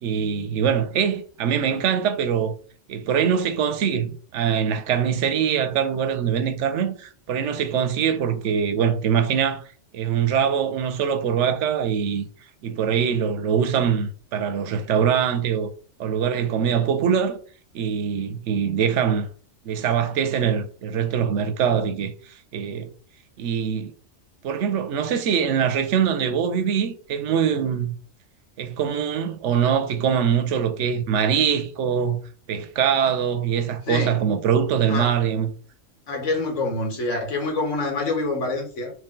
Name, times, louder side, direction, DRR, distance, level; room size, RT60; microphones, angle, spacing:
voice 1, 0.0-2.5 2.9-9.6 9.9-12.3 12.6-15.7 16.0-17.4 17.7-19.3 19.6-22.9 23.4-23.9 24.4-28.0 28.6-32.2 32.5-35.5, right 7 dB, 80° right, 0.9 m, -23 dB
voice 2, 33.9-34.2 34.9-35.2 36.1-38.9, left 2 dB, 85° left, 1.4 m, -26 dB
3.0 x 2.9 x 3.6 m
omnidirectional pair, 1.2 m